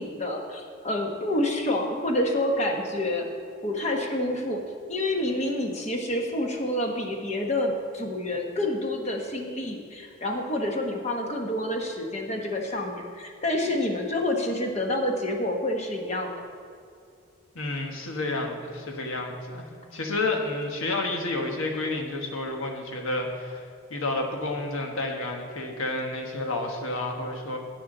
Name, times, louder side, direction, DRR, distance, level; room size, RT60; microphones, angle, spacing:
voice 1, 0.0-3.3 3.6-4.6 4.9-16.3, left 1 dB, 30° left, 2 dB, 1.0 m, -28 dB
voice 2, 17.5-23.6 23.9-27.6, left 2 dB, 85° left, 2 dB, 1.4 m, -30 dB
16.0 x 6.1 x 3.8 m, 2.4 s
head